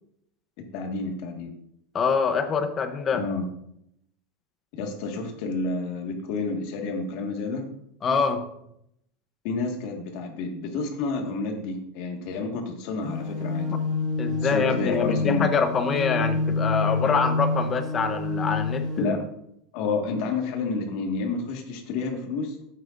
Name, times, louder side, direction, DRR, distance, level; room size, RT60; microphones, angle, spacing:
voice 1, 0.7-1.5 3.1-3.4 4.7-7.6 9.4-13.7 14.4-15.4 18.9-19.2 19.7-22.5, left 3 dB, 50° left, 2 dB, 1.7 m, -29 dB
voice 2, 1.9-3.2 8.0-8.4 14.2-19.1, left 5 dB, 20° left, 8 dB, 0.7 m, -25 dB
sound 1, 13.0-19.0, left 3 dB, 15° right, 2.8 m, -28 dB
12.5 x 8.6 x 2.5 m, 0.77 s
supercardioid pair, 170°, 0 cm